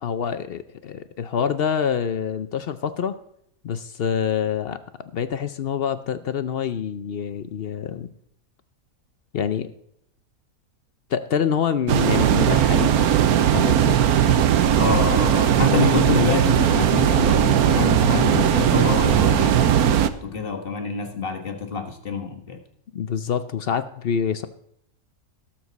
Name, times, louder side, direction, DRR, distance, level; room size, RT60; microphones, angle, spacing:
voice 1, 0.0-3.2 3.6-8.1 9.3-9.7 11.1-12.9 13.5-14.0 22.9-24.5, left 7 dB, 60° left, 0.6 m, -26 dB
sound 1, 11.9-20.1, right 9 dB, 90° right, 1.2 m, -18 dB
voice 2, 14.8-22.6, left 4 dB, 40° left, 1.6 m, -26 dB
17.0 x 7.4 x 4.1 m
omnidirectional pair, 1.5 m